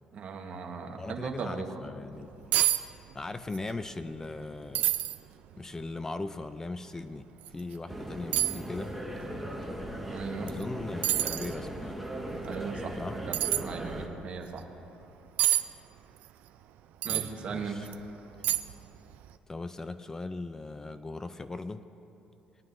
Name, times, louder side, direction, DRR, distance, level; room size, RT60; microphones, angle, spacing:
voice 1, 0.1-1.8 10.0-10.5 12.4-13.0 13.3-14.6 17.0-17.9, right 5 dB, 55° right, 3 dB, 1.2 m, -38 dB
voice 2, 1.0-2.5 3.1-4.9 5.6-7.3 7.5-9.0 10.5-12.0 13.0-13.2 17.1-17.9 19.5-21.9, left 3 dB, 20° left, 10 dB, 0.4 m, -39 dB
sound 1, 2.2-2.3 2.5-2.8 3.1-3.6 4.0-4.1 4.7-5.2 5.8-5.9 7.4-7.5 8.3-8.6 10.5-10.6 11.0-11.5 13.3-13.6 15.4-15.6 17.0-17.3 17.9-18.0 18.4-18.8 19.1-19.3, right 14 dB, 80° right, 0.4 m, -27 dB
sound 2, 7.9-14.1, right 1 dB, ahead, 1.5 m, -38 dB
21.0 x 9.2 x 2.6 m, 2.9 s
cardioid pair, 95°, 3 cm